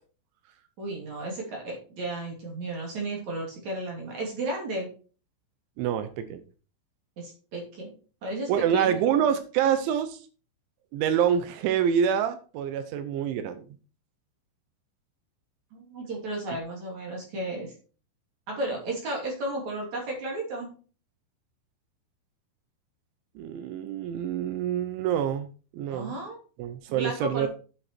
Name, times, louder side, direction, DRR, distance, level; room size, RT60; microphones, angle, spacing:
voice 1, 0.8-4.9 7.2-7.9 8.2-9.0 15.7-17.7 18.5-20.7 25.8-26.4 26.9-27.5, right 2 dB, 40° right, -1 dB, 3.6 m, -33 dB
voice 2, 5.8-6.4 8.5-10.2 10.9-13.7 23.4-26.2 26.6-27.5, right 8 dB, 80° right, 10 dB, 3.1 m, -26 dB
9.4 x 7.5 x 4.5 m, 0.37 s
omnidirectional pair, 5.6 m